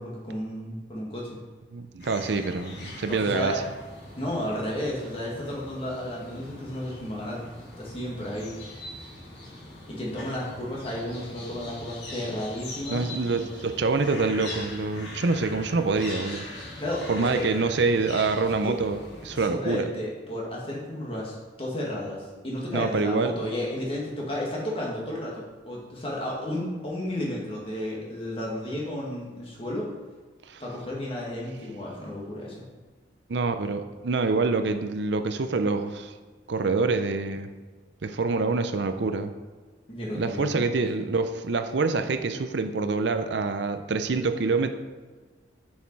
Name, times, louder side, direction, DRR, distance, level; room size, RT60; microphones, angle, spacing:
voice 1, 0.0-1.4 3.1-3.6 4.2-7.5 7.8-8.5 9.9-13.0 16.8-17.5 18.6-18.8 19.5-29.9 30.6-32.7 39.9-40.6 40.9-41.0, left 1 dB, 30° left, -3 dB, 1.9 m, -33 dB
voice 2, 1.7-3.6 12.9-16.5 17.1-19.9 22.7-23.3 30.5-30.6 33.3-36.1 36.5-37.5 38.0-39.3 40.1-44.7, right 3 dB, 70° right, 8 dB, 0.6 m, -26 dB
sound 1, 2.0-19.5, left 1 dB, 65° left, 2.7 m, -42 dB
7.1 x 6.4 x 4.7 m, 1.4 s
head